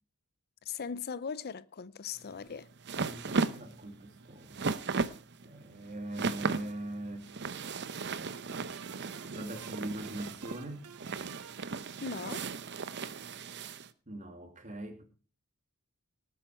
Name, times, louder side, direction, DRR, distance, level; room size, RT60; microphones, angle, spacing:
voice 1, 0.7-2.7 12.0-12.5, left 6 dB, 45° left, 0.5 m, -39 dB
sound 1, 2.2-13.9, right 4 dB, 50° right, 0.8 m, -36 dB
voice 2, 3.1-4.6 5.4-7.2 8.8-8.9 9.2-10.8 14.1-15.0, right 1 dB, 35° right, 2.7 m, -41 dB
sound 2, 8.3-12.6, right 7 dB, 85° right, 0.8 m, -53 dB
19.0 x 8.6 x 4.5 m
head